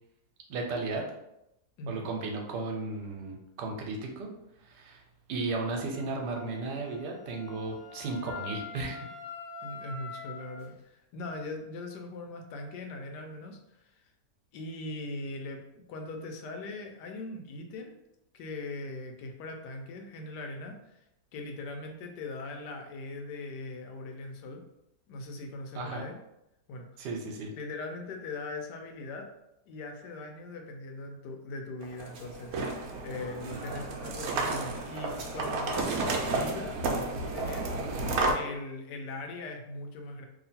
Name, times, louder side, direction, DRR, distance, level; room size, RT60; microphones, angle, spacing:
voice 1, 0.5-1.0 1.9-4.3 4.6-5.0 5.3-9.0 25.7-26.0 27.0-27.5, right 3 dB, 90° right, 2 dB, 1.3 m, -34 dB
voice 2, 1.8-2.1 9.6-14.0 14.5-18.0 18.3-21.0 21.3-24.6 25.1-26.2 26.7-26.9 27.5-29.3 29.7-36.8 37.3-38.1 38.3-40.3, left 2 dB, 85° left, 3 dB, 1.2 m, -40 dB
Wind instrument woodwind instrument, 5.9-10.6, left 5 dB, 65° left, 1.1 m, -44 dB
sound 1, 31.8-38.3, right 3 dB, 65° right, 1.0 m, -32 dB
2.9 x 2.7 x 4.1 m, 0.83 s
omnidirectional pair, 1.8 m